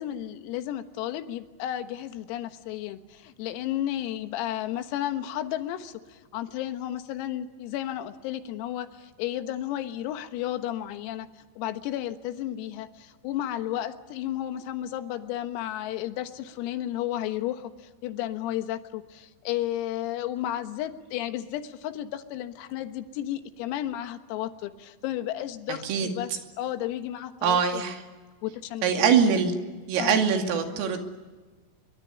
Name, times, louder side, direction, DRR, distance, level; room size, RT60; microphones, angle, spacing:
voice 1, 0.0-11.3 11.6-26.3 26.6-27.8 28.4-29.1 30.0-30.3, left 12 dB, 90° left, 9 dB, 4.1 m, -33 dB
voice 2, 27.4-28.0 28.8-29.5 29.9-31.0, right 6 dB, 75° right, 4 dB, 5.0 m, -23 dB
24.5 x 23.5 x 9.9 m, 1.3 s
omnidirectional pair, 6.0 m